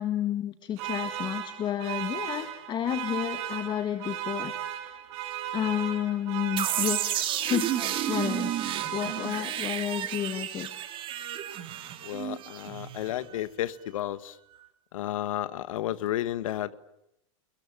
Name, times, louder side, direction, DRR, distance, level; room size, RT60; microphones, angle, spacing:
voice 1, 0.0-5.0 5.5-7.1 7.4-7.8 8.1-8.6 8.9-10.7, left 10 dB, 25° left, 8 dB, 1.8 m, -31 dB
sound 1, 0.8-9.8, right 11 dB, 55° right, 5.5 m, -36 dB
sound 2, 6.6-13.4, right 11 dB, 30° right, 2.7 m, -32 dB
voice 2, 12.0-14.4 14.9-16.8, left 13 dB, 75° left, 14 dB, 1.6 m, -32 dB
30.0 x 21.5 x 9.1 m, 0.85 s
supercardioid pair, 140°, 17 cm